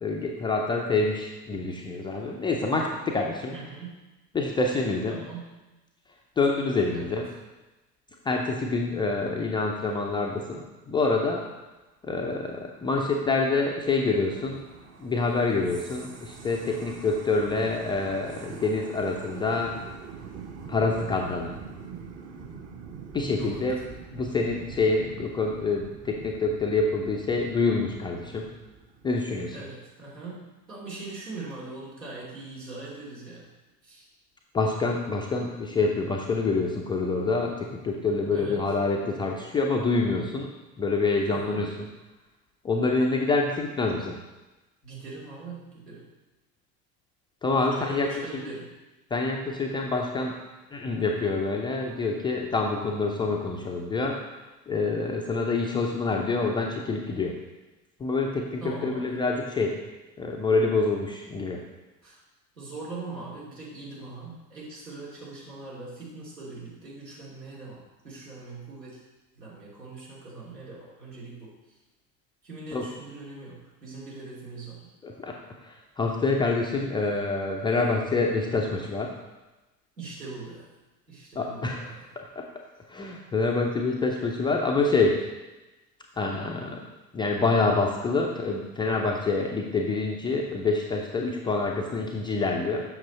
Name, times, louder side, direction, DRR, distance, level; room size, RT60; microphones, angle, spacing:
voice 1, 0.0-3.5 4.3-5.2 6.4-7.2 8.2-11.5 12.0-14.6 15.0-19.8 20.7-21.6 23.1-23.8 24.1-28.5 29.0-29.6 34.5-40.5 40.8-41.7 42.6-44.2 47.4-48.4 49.1-50.3 50.7-54.2 54.7-57.4 58.0-59.8 60.2-61.6 72.7-72.9 75.0-75.3 75.6-79.1 81.4-82.4 82.9-85.2 86.2-86.8 87.1-92.8, left 3 dB, 10° left, 0 dB, 0.4 m, -26 dB
voice 2, 3.5-3.9 5.1-5.5 6.9-7.2 23.3-23.7 29.5-30.4 30.7-33.5 33.8-34.1 38.3-38.7 41.3-41.7 44.8-46.1 47.6-48.7 58.6-59.2 62.0-62.2 62.5-69.0 69.3-71.5 72.4-74.8 80.0-80.7 81.1-82.1, right 3 dB, 75° right, -6 dB, 2.9 m, -41 dB
sound 1, 12.6-29.1, right 5 dB, 30° right, 1.0 m, -44 dB
7.8 x 6.0 x 4.1 m, 1.1 s
figure-of-eight pair, 75°, 49 cm